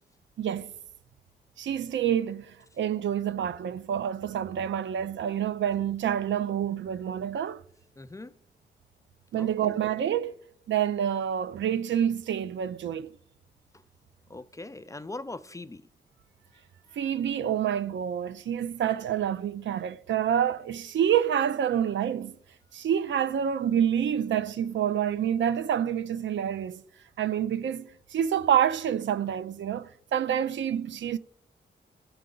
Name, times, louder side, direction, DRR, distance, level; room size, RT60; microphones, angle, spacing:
voice 1, 0.4-0.7 1.6-7.6 9.3-10.3 10.7-13.1 17.0-22.3 22.7-26.8 27.2-31.2, right 9 dB, 85° right, 0.4 m, -27 dB
voice 2, 8.0-8.3 9.4-9.8 14.3-15.8, left 2 dB, 15° left, 0.4 m, -41 dB
13.5 x 4.6 x 3.8 m
cardioid pair, 65°, 19 cm